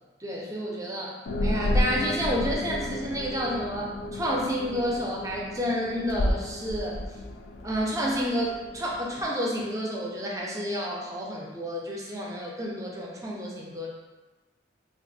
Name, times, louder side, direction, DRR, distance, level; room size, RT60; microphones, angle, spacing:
voice 1, 0.2-1.2 1.4-7.0 7.6-13.9, equal, 20° right, -2 dB, 0.4 m, -30 dB
sound 1, 1.3-9.2, left 1 dB, 65° left, 0.3 m, -31 dB
3.0 x 2.4 x 2.6 m, 1.2 s
head